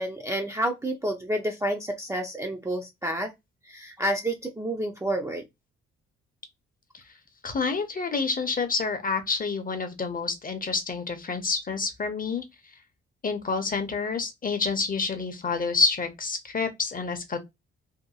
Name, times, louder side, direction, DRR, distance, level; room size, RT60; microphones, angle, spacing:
voice 1, 0.0-3.3 3.6-5.4, right 1 dB, 10° right, 0.5 m, -29 dB
voice 2, 7.4-12.4 13.2-17.4, left 4 dB, 25° left, 0.7 m, -28 dB
2.8 x 2.5 x 2.3 m
figure-of-eight pair, 40°, 34 cm